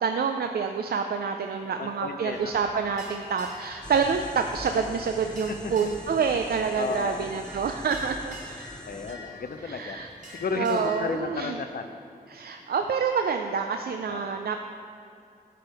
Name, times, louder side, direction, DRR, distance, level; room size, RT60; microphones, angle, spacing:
voice 1, 0.0-8.7 9.6-10.1 10.6-11.6 12.3-14.6, right 6 dB, 80° right, 5 dB, 0.4 m, -27 dB
voice 2, 1.6-2.5 5.5-5.6 6.8-7.2 8.8-10.0 10.3-12.0 14.1-14.3, left 4 dB, 70° left, 7 dB, 0.5 m, -33 dB
sound 1, 2.3-11.2, left 1 dB, 50° right, 1.8 m, -46 dB
sound 2, 3.8-9.2, equal, 5° left, 0.5 m, -43 dB
10.5 x 4.9 x 4.7 m, 2.7 s
wide cardioid pair, 75°, 16 cm